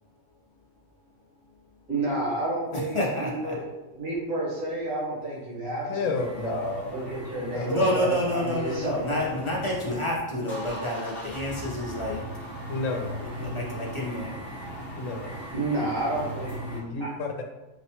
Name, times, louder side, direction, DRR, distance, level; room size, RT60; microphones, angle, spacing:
voice 1, 1.9-3.6 3.9-9.2 15.5-17.1, right 2 dB, 85° right, -5 dB, 1.6 m, -30 dB
voice 2, 2.7-3.6 7.7-12.5 13.4-14.6, left 1 dB, 40° left, -5 dB, 0.4 m, -29 dB
voice 3, 5.9-6.9 7.5-7.8 12.7-13.2 14.9-15.3 16.7-17.5, left 4 dB, 75° left, 4 dB, 0.9 m, -31 dB
sound 1, 6.1-10.0 10.3-16.8, right 1 dB, ahead, 0.7 m, -38 dB
5.0 x 2.1 x 2.8 m, 1.1 s
omnidirectional pair, 1.3 m